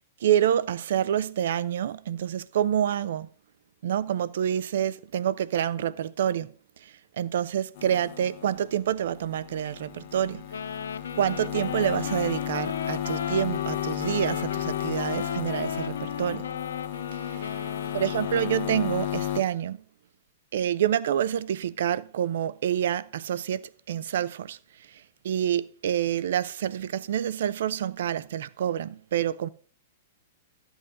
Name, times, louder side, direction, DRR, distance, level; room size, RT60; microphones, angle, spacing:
voice 1, 0.2-3.3 3.8-6.5 6.8-10.5 11.2-16.5 17.1-17.6 17.9-19.8 20.5-24.6 24.9-29.5, right 10 dB, 70° right, 0.5 m, -27 dB
sound 1, 7.8-19.4, left 11 dB, 60° left, 1.1 m, -33 dB
Wind instrument woodwind instrument, 10.5-19.0, left 7 dB, 85° left, 0.5 m, -36 dB
12.5 x 8.0 x 3.8 m
hypercardioid pair, 115°, 0 cm